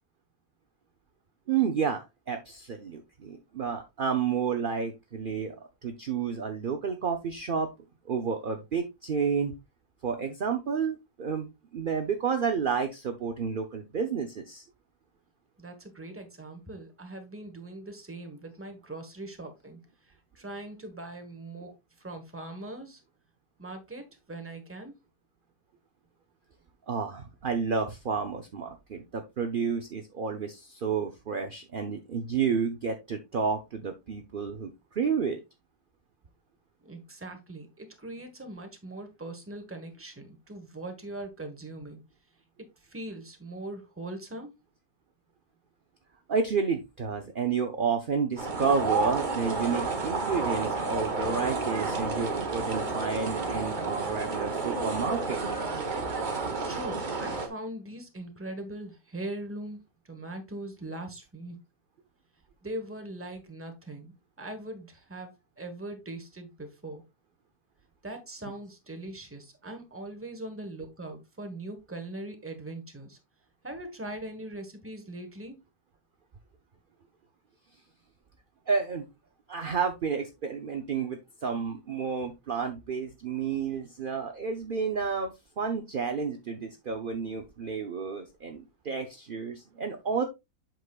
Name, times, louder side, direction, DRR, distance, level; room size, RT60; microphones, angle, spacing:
voice 1, 1.5-5.6 5.8-7.7 8.1-9.5 10.0-14.6 26.9-35.4 46.3-55.4 78.7-79.1 79.5-90.2, right 6 dB, 50° right, 5 dB, 0.6 m, -30 dB
voice 2, 15.6-23.0 23.6-24.9 36.8-42.0 42.6-44.5 56.7-59.8 60.0-61.6 62.6-67.0 68.0-73.2 73.6-75.6, right 1 dB, 10° right, 5 dB, 1.1 m, -41 dB
sound 1, 48.4-57.5, right 3 dB, 30° right, 1.1 m, -31 dB
8.0 x 6.0 x 2.4 m, 0.22 s
omnidirectional pair, 1.8 m